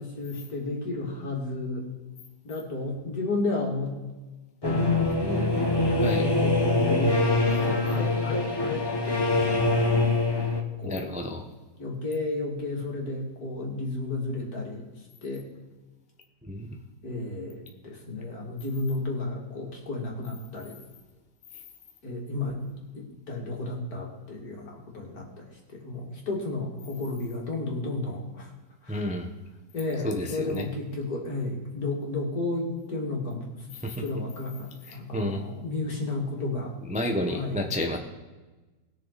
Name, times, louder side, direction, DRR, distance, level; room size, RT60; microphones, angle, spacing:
voice 1, 0.0-1.9 2.4-4.0 4.6-5.6 6.2-9.9 10.8-11.1 11.8-14.9 15.2-15.5 17.0-20.8 22.0-28.5 28.8-29.1 29.7-33.5 34.0-36.7 37.3-37.6, left 2 dB, 55° left, -1 dB, 3.0 m, -32 dB
sound 1, 4.6-10.6, left 2 dB, 15° left, 1.1 m, -24 dB
voice 2, 5.9-6.3 10.8-11.4 16.4-16.8 28.9-29.3 30.0-30.7 33.8-34.0 34.9-35.5 36.9-38.0, left 1 dB, 5° right, 2 dB, 0.8 m, -30 dB
20.5 x 6.8 x 4.2 m, 1.2 s
omnidirectional pair, 2.0 m